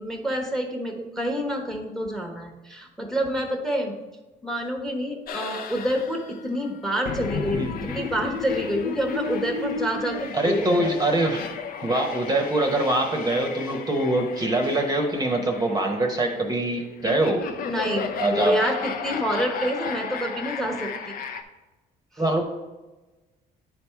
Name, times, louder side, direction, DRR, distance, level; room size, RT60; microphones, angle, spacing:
voice 1, 0.0-3.9 4.4-10.7 17.6-21.1, equal, ahead, 3 dB, 1.0 m, -28 dB
sound 1, 5.3-21.4, left 6 dB, 60° left, 0.7 m, -34 dB
voice 2, 7.5-7.9 10.3-11.4 11.8-17.5 18.2-18.6 22.2-22.4, right 1 dB, 20° right, 2 dB, 0.9 m, -24 dB
9.4 x 3.5 x 4.5 m, 1.2 s
cardioid pair, 110°, 17 cm